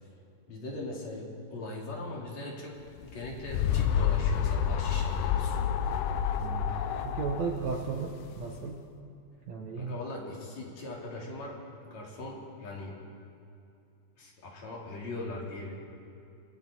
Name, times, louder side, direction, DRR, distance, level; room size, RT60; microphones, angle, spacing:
voice 1, 0.5-5.6 9.8-13.0 14.2-15.7, left 2 dB, 40° left, -2 dB, 3.9 m, -40 dB
sound 1, 3.0-8.6, left 8 dB, 75° left, 2.5 m, -29 dB
voice 2, 6.4-8.8 9.5-10.0, right 5 dB, 75° right, 0 dB, 1.6 m, -35 dB
28.0 x 20.5 x 4.5 m, 2.6 s
omnidirectional pair, 5.0 m